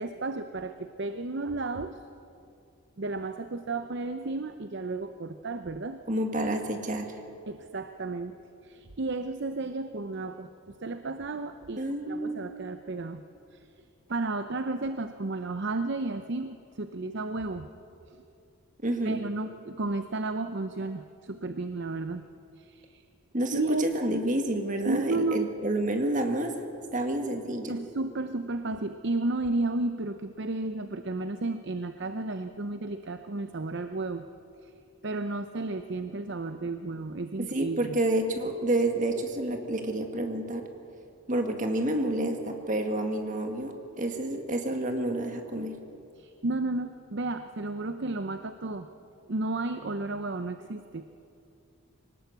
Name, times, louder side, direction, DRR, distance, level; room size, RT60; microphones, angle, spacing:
voice 1, 0.0-2.0 3.0-6.0 7.5-8.4 8.6-13.2 13.5-13.7 14.1-17.6 18.1-18.2 19.0-22.2 22.6-23.0 23.5-24.0 24.9-25.5 27.7-34.3 34.6-34.7 35.0-38.0 46.2-48.9 49.3-51.1, right 2 dB, 55° right, 9 dB, 0.7 m, -33 dB
voice 2, 6.1-7.1 11.8-12.4 18.8-19.2 23.3-26.5 26.9-27.7 37.5-40.6 41.3-45.7, right 1 dB, 35° right, 4 dB, 2.0 m, -29 dB
22.5 x 19.0 x 8.1 m, 2.6 s
head